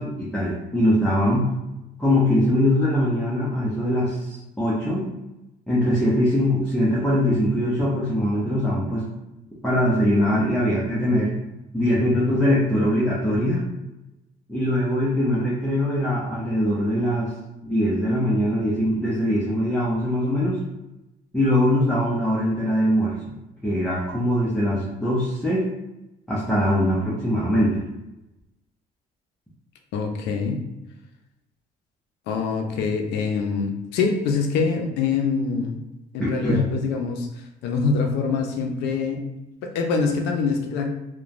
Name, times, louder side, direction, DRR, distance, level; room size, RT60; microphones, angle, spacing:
voice 1, 0.0-1.5 2.0-5.0 5.7-9.0 9.6-11.4 11.7-13.6 14.5-17.3 17.6-20.6 21.3-23.3 23.6-25.6 26.3-27.8 36.2-36.7, equal, 5° left, -7 dB, 0.6 m, -22 dB
voice 2, 29.9-30.6 32.3-35.8 36.1-37.3 37.6-39.2 39.6-40.9, left 5 dB, 85° left, 3 dB, 0.5 m, -24 dB
2.9 x 2.1 x 2.5 m, 0.94 s
cardioid pair, 110°, 17 cm